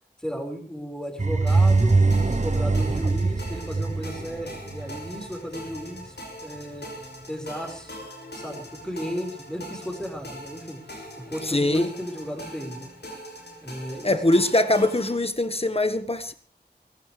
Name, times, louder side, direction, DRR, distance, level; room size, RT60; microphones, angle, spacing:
voice 1, 0.2-6.2 6.4-6.9 7.3-8.0 8.3-12.9 13.6-14.2, equal, 5° left, 5.2 m, -35 dB
sound 1, 1.2-5.1, right 3 dB, 45° right, 1.0 m, -22 dB
sound 2, 1.5-15.2, equal, 75° left, 6.2 m, -42 dB
voice 2, 11.4-11.9 14.0-16.3, left 1 dB, 35° left, 1.5 m, -22 dB
24.0 x 15.0 x 3.4 m
wide cardioid pair, 50°, 17 cm